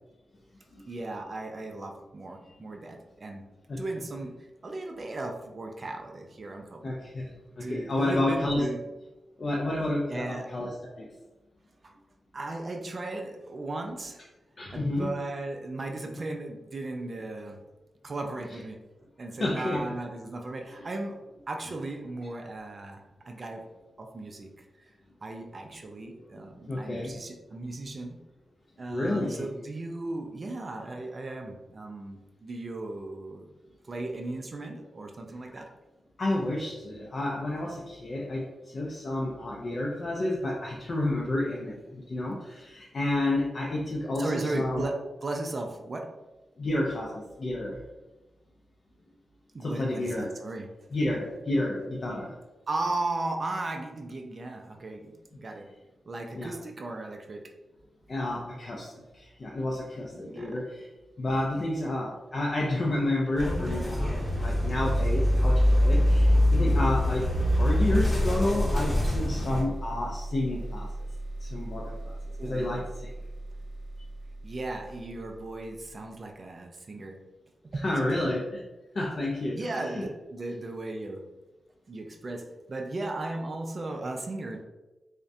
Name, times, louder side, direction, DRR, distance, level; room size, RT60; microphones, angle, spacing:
voice 1, 0.9-3.5 3.7-4.4 4.6-6.9 7.6-8.8 10.1-10.5 11.8-11.9 12.3-14.2 14.7-17.6 18.0-18.8 19.2-21.2 21.5-23.7 24.0-24.5 25.2-28.2 28.8-33.5 33.8-35.7 44.2-46.1 49.5-50.7 52.7-55.7 56.1-57.5 60.1-60.6 72.4-72.9 74.4-77.2 77.6-78.3 79.5-81.3 81.9-84.6, right 2 dB, 45° right, 3 dB, 0.3 m, -36 dB
voice 2, 6.8-7.3 7.6-8.7 9.4-11.1 14.6-15.1 19.4-19.9 26.0-26.4 26.7-27.2 28.9-29.5 35.5-35.6 36.2-44.9 46.6-47.8 49.6-50.3 50.9-52.3 56.3-56.5 58.1-60.9 61.2-67.3 67.6-70.9 71.4-72.2 72.4-72.9 77.8-78.6 78.9-80.1, left 1 dB, 50° left, -3 dB, 0.3 m, -30 dB
sound 1, 63.4-69.6, left 1 dB, 10° left, 0.7 m, -24 dB
sound 2, 68.7-76.2, right 1 dB, 80° left, 0.7 m, -39 dB
2.3 x 2.1 x 2.6 m, 1.1 s
cardioid pair, 75°, 0 cm